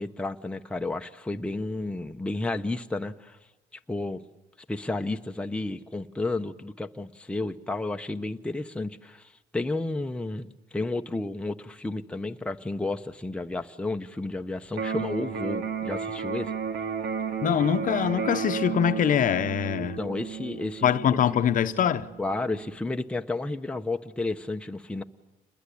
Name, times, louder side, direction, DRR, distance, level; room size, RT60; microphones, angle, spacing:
voice 1, 0.0-3.4 3.9-4.2 4.7-16.5 19.8-21.2 22.2-25.0, left 2 dB, 5° left, 1.0 m, -32 dB
Electric guitar, 14.7-22.7, right 6 dB, 75° right, 2.4 m, -33 dB
voice 2, 17.4-20.0 20.8-22.1, left 9 dB, 50° left, 0.9 m, -23 dB
28.5 x 21.0 x 8.6 m
cardioid pair, 110°, 17 cm